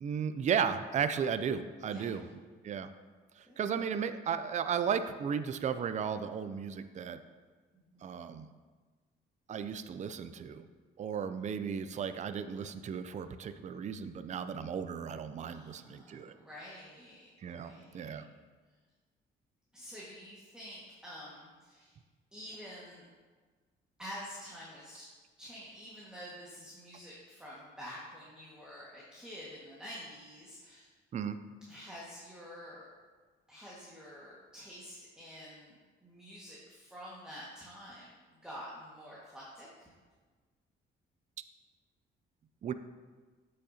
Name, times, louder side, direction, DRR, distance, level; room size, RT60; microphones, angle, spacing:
voice 1, 0.0-2.3 2.6-2.9 3.4-7.2 8.0-8.5 9.5-10.7 11.0-16.3 17.4-18.2 31.1-31.4 42.6-42.7, right 7 dB, 35° right, 11 dB, 0.4 m, -35 dB
voice 2, 1.9-2.3 3.5-3.6 7.9-8.1 15.4-18.2 19.7-22.0 22.3-23.1 24.0-25.1 25.4-30.9 31.7-32.9 33.5-35.8 36.0-39.9, equal, 5° right, -7 dB, 1.7 m, -48 dB
8.2 x 6.3 x 2.8 m, 1.4 s
cardioid pair, 90°, 20 cm